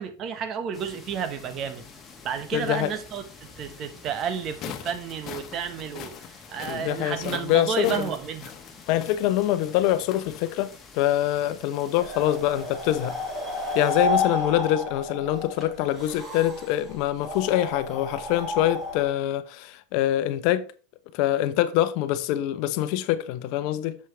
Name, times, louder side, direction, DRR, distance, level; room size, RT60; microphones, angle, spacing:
voice 1, 0.0-1.8 2.2-8.5, right 7 dB, 45° right, 1.3 m, -31 dB
sound 1, 0.7-14.0, left 4 dB, 20° left, 2.2 m, -48 dB
voice 2, 2.5-2.9 6.6-8.1 8.9-13.1 13.7-20.7 21.1-24.0, left 13 dB, 60° left, 0.8 m, -25 dB
sound 2, 4.3-10.8, left 9 dB, 45° left, 1.2 m, -43 dB
sound 3, 12.0-19.1, left 2 dB, 20° right, 5.0 m, -31 dB
7.5 x 7.3 x 3.3 m
hypercardioid pair, 105°, 0 cm